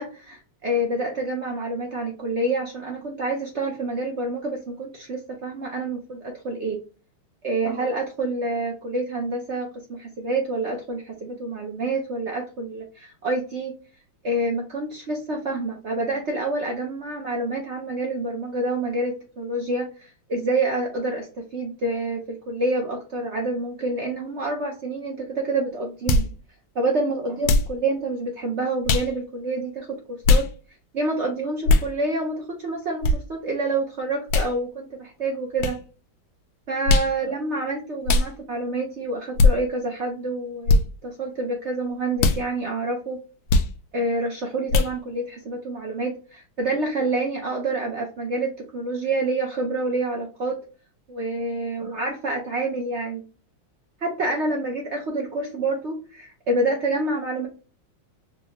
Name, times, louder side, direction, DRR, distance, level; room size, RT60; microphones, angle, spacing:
voice 1, 0.0-6.8 7.4-13.7 14.2-26.3 26.7-30.5 30.9-35.8 36.7-43.2 43.9-50.6 51.1-53.2 54.0-57.5, right 2 dB, 60° right, 0 dB, 0.7 m, -27 dB
sound 1, 26.1-26.3 27.4-27.7 28.9-29.1 30.2-30.5 31.7-31.9 33.0-33.2 34.3-34.5 35.6-35.8 36.9-37.1 38.1-38.3 39.4-39.5 40.7-40.8 42.2-42.4 43.5-43.7 44.7-44.9, left 3 dB, 85° left, 1.5 m, -18 dB
4.6 x 2.2 x 2.9 m, 0.34 s
omnidirectional pair, 2.2 m